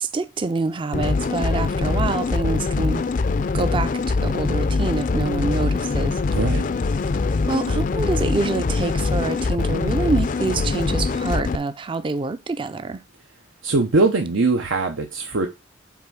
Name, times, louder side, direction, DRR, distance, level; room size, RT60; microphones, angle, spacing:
voice 1, 0.0-3.1 3.5-6.2 7.5-13.0, right 3 dB, 25° right, 0.4 m, -26 dB
sound 1, 0.9-11.6, left 4 dB, 40° left, 0.4 m, -23 dB
voice 2, 6.3-6.6 13.6-15.5, right 3 dB, 90° right, 0.9 m, -21 dB
5.9 x 4.3 x 6.1 m
head